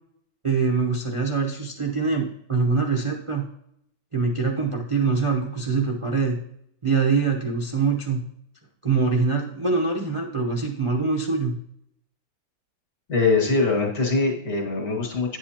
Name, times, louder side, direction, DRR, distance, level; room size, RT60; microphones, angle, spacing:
voice 1, 0.4-3.5 4.1-6.4 6.8-8.2 8.8-11.5, right 4 dB, 30° right, 0 dB, 0.5 m, -24 dB
voice 2, 13.1-15.4, left 3 dB, 60° left, -1 dB, 2.2 m, -22 dB
9.8 x 8.0 x 2.8 m, 0.73 s
omnidirectional pair, 1.8 m